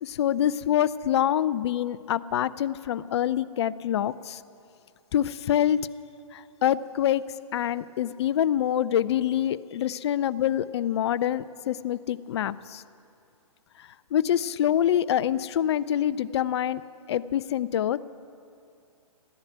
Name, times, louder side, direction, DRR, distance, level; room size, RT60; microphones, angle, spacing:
voice 1, 0.0-4.4 5.1-5.8 6.3-7.2 7.5-12.8 13.8-16.8 17.1-18.0, left 10 dB, 50° left, 16 dB, 0.5 m, -26 dB
14.5 x 10.5 x 9.4 m, 2.5 s
hypercardioid pair, 135°, 18 cm